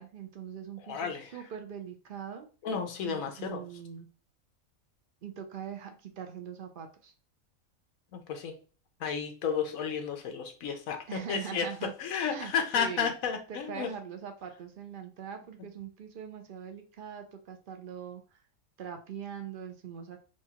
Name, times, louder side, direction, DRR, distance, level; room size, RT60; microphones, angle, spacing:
voice 1, 0.0-2.5 3.0-4.1 5.2-7.1 11.1-11.9 12.3-13.1 13.5-18.4 18.8-20.2, right 8 dB, 65° right, 6 dB, 0.5 m, -42 dB
voice 2, 0.8-1.3 2.6-3.6 8.1-8.5 9.0-11.7 12.0-13.9, left 6 dB, 75° left, 5 dB, 1.1 m, -32 dB
4.5 x 2.3 x 2.8 m, 0.37 s
omnidirectional pair, 1.5 m